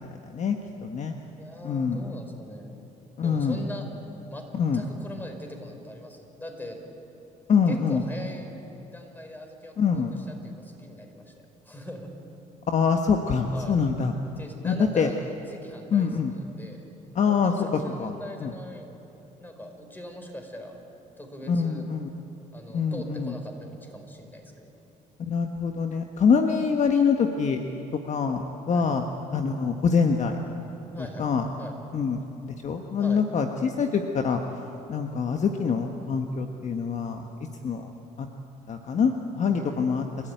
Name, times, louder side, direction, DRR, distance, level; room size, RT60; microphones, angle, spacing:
voice 1, 0.8-1.2 1.6-2.0 3.2-3.6 4.5-4.8 7.5-8.0 9.8-10.1 12.7-14.1 14.6-15.1 15.9-16.3 17.1-18.1 18.4-18.5 21.5-22.1 22.7-23.3 25.2-27.6 27.9-29.0 29.3-30.4 31.2-31.5 31.9-34.4 34.9-37.2 37.6-37.9 38.2-38.3 38.7-40.1, left 6 dB, 45° left, 4 dB, 1.4 m, -25 dB
voice 2, 1.4-2.7 3.2-3.9 4.3-4.4 4.7-6.8 7.7-8.5 8.9-11.3 11.6-12.1 13.5-13.8 14.4-16.1 16.4-16.8 17.2-18.9 19.4-20.8 21.2-21.9 22.5-24.7 28.7-29.0 30.9-31.3 31.6-31.8 33.0-33.2 39.4-40.0, left 1 dB, 10° left, 3 dB, 5.0 m, -41 dB
29.5 x 13.5 x 9.3 m, 3.0 s
supercardioid pair, 80°, 16 cm